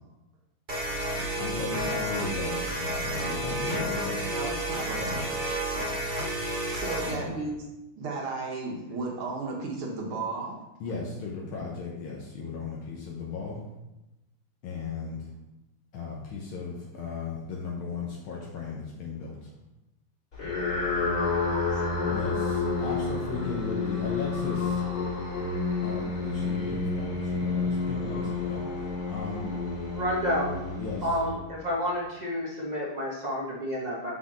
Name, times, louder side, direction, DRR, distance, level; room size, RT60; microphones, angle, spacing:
sound 1, 0.7-7.2, right 1 dB, 30° right, 1.1 m, -31 dB
voice 1, 1.4-4.3 5.0-5.3 7.1-7.3 10.8-13.6 14.6-15.3 15.9-19.5 22.1-24.9 25.8-29.4 30.8-31.1, left 4 dB, 75° left, -3 dB, 1.7 m, -36 dB
voice 2, 4.3-5.0 6.7-7.6 8.0-10.6 21.7-21.8, right 3 dB, 75° right, -1 dB, 2.1 m, -34 dB
sound 2, 20.3-31.8, left 4 dB, 45° left, 3.0 m, -30 dB
voice 3, 29.9-30.5 31.0-34.1, equal, 50° right, -4 dB, 0.5 m, -30 dB
6.1 x 5.6 x 3.8 m, 0.97 s
omnidirectional pair, 2.4 m